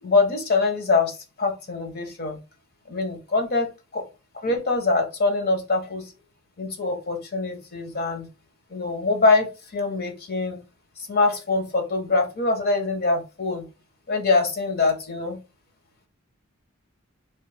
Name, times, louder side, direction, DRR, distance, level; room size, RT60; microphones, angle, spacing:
voice 1, 0.0-2.4 2.9-3.7 3.9-4.0 4.4-6.1 6.6-8.3 8.7-10.6 11.1-13.7 14.1-15.4, left 3 dB, 50° left, 5 dB, 1.0 m, -24 dB
3.4 x 3.2 x 3.4 m, 0.29 s
head